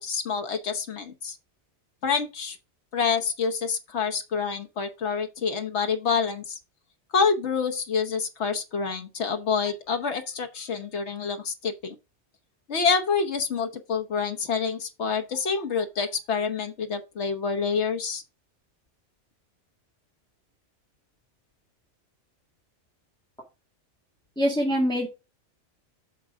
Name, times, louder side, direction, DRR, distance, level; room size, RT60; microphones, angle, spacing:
voice 1, 0.0-1.4 2.0-2.6 2.9-6.6 7.1-11.9 12.7-18.2, left 5 dB, 70° left, 1.4 m, -27 dB
voice 2, 24.4-25.1, equal, 5° left, 2.0 m, -24 dB
9.2 x 5.9 x 3.6 m
omnidirectional pair, 1.2 m